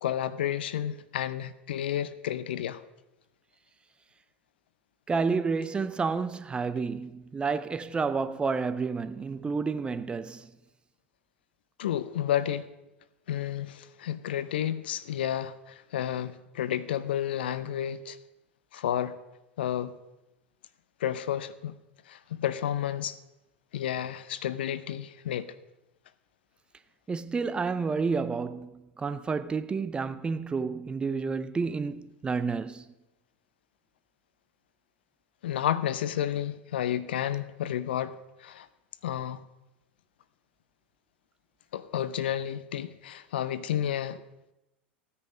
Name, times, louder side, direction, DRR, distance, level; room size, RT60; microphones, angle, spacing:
voice 1, 0.0-2.8 11.8-12.6 13.3-18.2 18.7-19.1 19.6-19.9 21.0-21.7 22.1-23.2 23.7-25.5 35.4-38.7 39.0-39.4 41.7-44.2, left 10 dB, 65° left, 0.6 m, -31 dB
voice 2, 5.1-10.5 27.1-32.8, right 4 dB, 15° right, 0.6 m, -30 dB
15.5 x 9.7 x 5.1 m
figure-of-eight pair, 85°, 6 cm